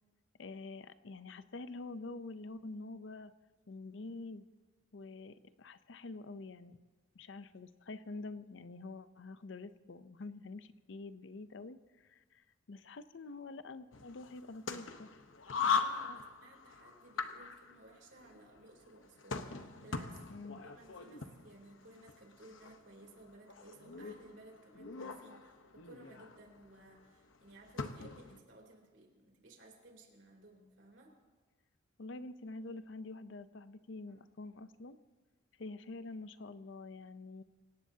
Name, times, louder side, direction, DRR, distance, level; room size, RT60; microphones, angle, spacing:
voice 1, 0.4-3.3 3.7-4.4 4.9-6.8 7.1-15.1 15.6-16.2 20.3-20.7 32.0-35.0 35.6-37.4, left 3 dB, 65° left, 13 dB, 0.6 m, -47 dB
sound 1, 13.9-28.4, left 5 dB, 90° left, 1.0 m, -41 dB
voice 2, 15.4-20.3 20.6-31.1, right 2 dB, 65° right, 1 dB, 3.3 m, -58 dB
25.5 x 17.5 x 2.8 m, 1.3 s
head